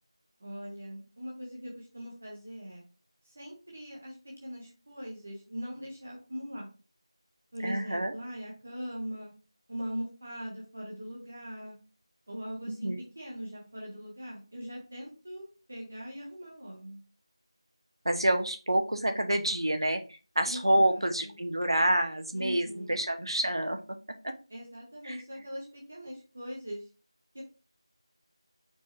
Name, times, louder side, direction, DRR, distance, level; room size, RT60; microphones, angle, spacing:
voice 1, 0.4-2.8 3.4-6.7 7.5-9.3 9.7-11.8 12.3-17.0 20.4-21.4 22.3-23.0 24.5-26.8 27.3-27.4, equal, 15° right, -3 dB, 0.5 m, -41 dB
voice 2, 7.6-8.1 12.7-13.0 18.0-23.8 24.2-24.3 25.0-25.2, right 1 dB, 55° right, 6 dB, 0.8 m, -28 dB
4.5 x 2.9 x 3.8 m, 0.33 s
figure-of-eight pair, 180°, 3 cm